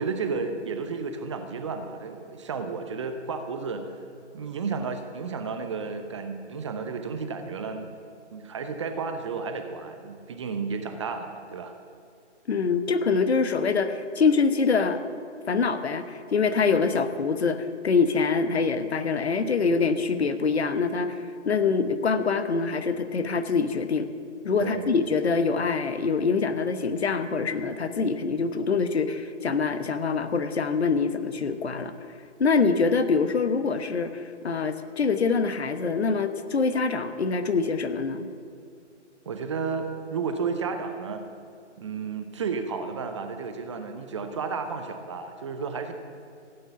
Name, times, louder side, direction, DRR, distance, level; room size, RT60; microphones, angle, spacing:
voice 1, 0.0-3.9 4.3-8.0 8.3-11.7 16.7-16.9 24.6-24.9 39.3-41.2 41.8-45.9, right 5 dB, 25° right, 7 dB, 0.7 m, -32 dB
voice 2, 12.5-15.0 15.5-24.1 24.4-31.9 32.4-38.3, left 5 dB, 60° left, 10 dB, 1.1 m, -25 dB
15.5 x 8.8 x 7.0 m, 2.4 s
figure-of-eight pair, 140°, 36 cm